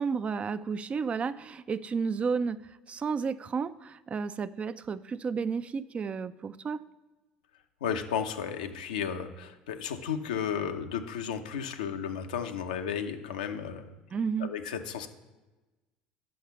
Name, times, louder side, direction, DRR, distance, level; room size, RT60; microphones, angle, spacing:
voice 1, 0.0-2.6 2.9-6.8 14.1-14.5, right 5 dB, 30° right, 14 dB, 0.4 m, -32 dB
voice 2, 7.8-14.0 14.4-15.1, left 7 dB, 85° left, 6 dB, 0.7 m, -33 dB
6.5 x 5.7 x 6.8 m, 1.1 s
hypercardioid pair, 80°, 4 cm